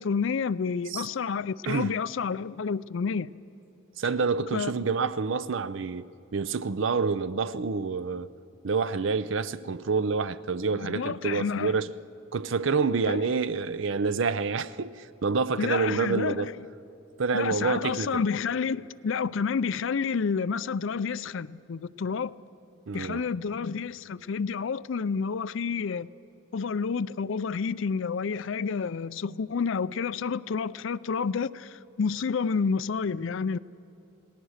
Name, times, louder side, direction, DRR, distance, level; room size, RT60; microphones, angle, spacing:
voice 1, 0.0-3.3 4.5-4.9 10.7-11.8 13.1-13.2 15.6-16.5 17.3-22.3 22.9-26.1 26.5-33.6, left 5 dB, 60° left, 0.4 m, -29 dB
voice 2, 1.7-2.0 4.0-6.0 6.3-8.3 8.6-11.9 12.3-16.5 17.2-18.2 22.9-23.3, right 4 dB, 60° right, 0.5 m, -28 dB
28.0 x 19.0 x 6.5 m
head